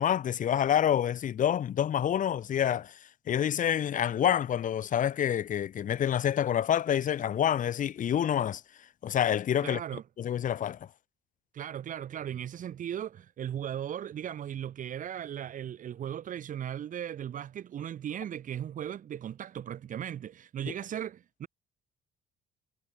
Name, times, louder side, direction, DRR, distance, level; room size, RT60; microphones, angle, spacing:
voice 1, 0.0-2.9 3.3-8.6 9.0-9.8 10.2-10.8, left 10 dB, 50° left, 1.9 m, -27 dB
voice 2, 9.6-10.0 11.5-21.5, right 10 dB, 50° right, 1.6 m, -37 dB
cardioid pair, 110°, 17 cm